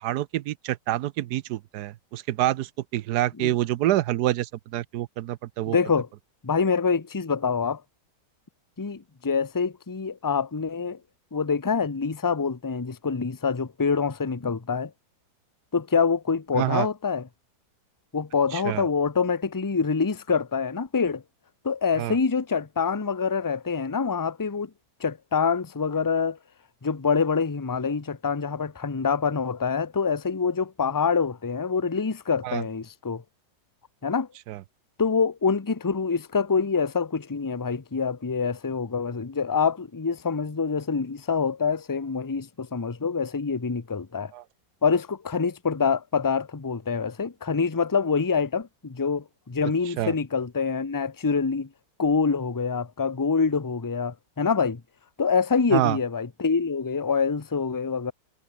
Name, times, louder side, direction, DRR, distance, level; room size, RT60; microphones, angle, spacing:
voice 1, 0.0-5.8 16.5-16.9 18.5-18.8 22.0-22.2 32.4-32.6 34.5-34.6 44.3-44.4 50.0-50.1 55.7-56.0, right 14 dB, 70° right, 1.1 m, -27 dB
voice 2, 5.7-6.1 6.4-7.8 8.8-11.0 11.3-14.9 15.7-17.3 18.1-21.2 21.6-24.7 25.0-26.4 26.8-33.2 34.0-34.3 35.0-44.3 44.8-51.7 52.0-54.8 55.2-58.1, left 5 dB, 20° left, 0.6 m, -26 dB
omnidirectional pair, 1.8 m